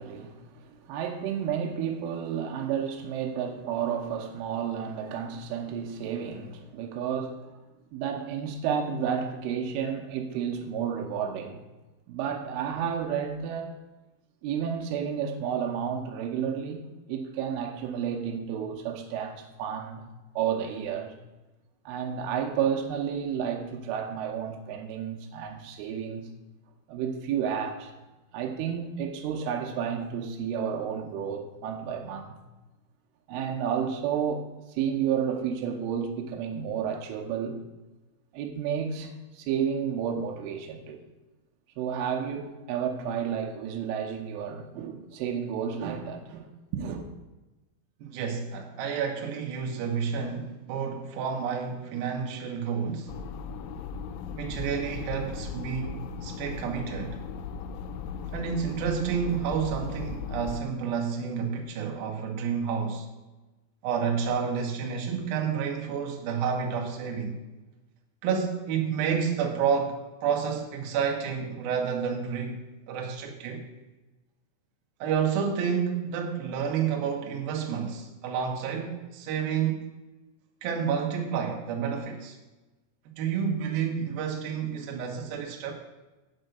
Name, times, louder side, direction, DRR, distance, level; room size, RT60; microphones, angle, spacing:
voice 1, 0.0-7.4 7.9-11.6 12.1-13.7 14.4-16.8 17.1-20.1 20.4-21.1 21.9-26.3 26.9-27.9 28.3-32.4 33.3-37.6 38.3-41.0 41.8-47.0, right 8 dB, 90° right, 3.5 m, -31 dB
voice 2, 48.0-53.1 54.4-57.2 58.3-63.1 63.8-67.4 68.2-72.6 72.9-73.6 75.0-79.9 80.6-82.4 83.2-85.7, right 7 dB, 65° right, 2.5 m, -30 dB
sound 1, 53.1-60.6, left 5 dB, 85° left, 3.0 m, -37 dB
8.0 x 6.4 x 7.8 m
omnidirectional pair, 5.5 m